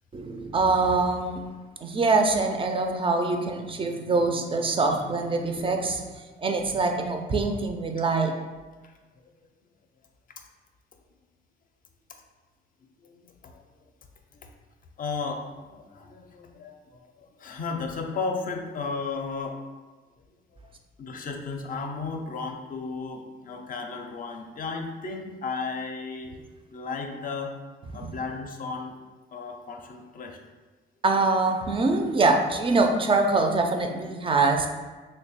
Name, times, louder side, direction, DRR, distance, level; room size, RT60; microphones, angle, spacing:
voice 1, 0.1-1.4 1.8-6.0 6.4-8.3 31.0-34.7, right 3 dB, 25° right, 4 dB, 0.4 m, -24 dB
voice 2, 13.0-13.6 14.3-14.5 15.0-19.6 20.6-20.7 21.0-26.3 26.7-27.6 27.9-29.0 29.3-30.4, left 4 dB, 45° left, 3 dB, 0.5 m, -34 dB
3.0 x 2.2 x 4.1 m, 1.3 s
cardioid pair, 90°, 20 cm